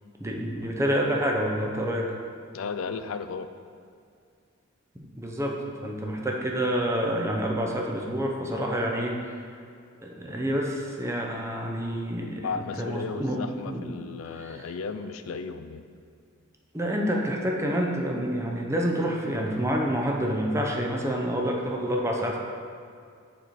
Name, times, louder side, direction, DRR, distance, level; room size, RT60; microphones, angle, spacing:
voice 1, 0.2-2.1 4.9-9.2 10.0-13.9 14.2-14.7 16.7-22.4, equal, 15° right, 0 dB, 0.7 m, -28 dB
voice 2, 2.5-3.5 12.4-15.8, left 5 dB, 80° left, 10 dB, 0.4 m, -34 dB
6.5 x 4.2 x 4.6 m, 2.3 s
head